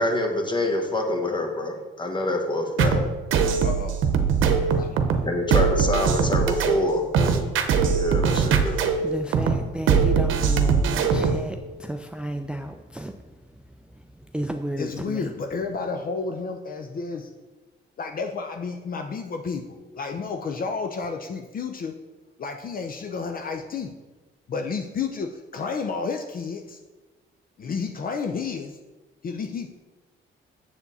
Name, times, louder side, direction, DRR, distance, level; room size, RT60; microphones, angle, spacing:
voice 1, 0.0-3.1 5.2-7.4 7.9-8.8, left 1 dB, 25° left, 3 dB, 1.5 m, -26 dB
sound 1, 2.8-11.5, right 6 dB, 85° right, 0.8 m, -21 dB
voice 2, 3.6-4.0 4.7-5.0 14.8-17.3 18.0-22.0 22.4-23.9 24.5-26.8 27.6-28.8 29.2-29.7, left 5 dB, 45° left, 5 dB, 0.6 m, -31 dB
voice 3, 4.5-4.8 8.6-13.1 14.3-15.3, right 1 dB, 5° right, 5 dB, 0.4 m, -32 dB
7.2 x 7.0 x 4.1 m, 1.3 s
cardioid pair, 90°, 20 cm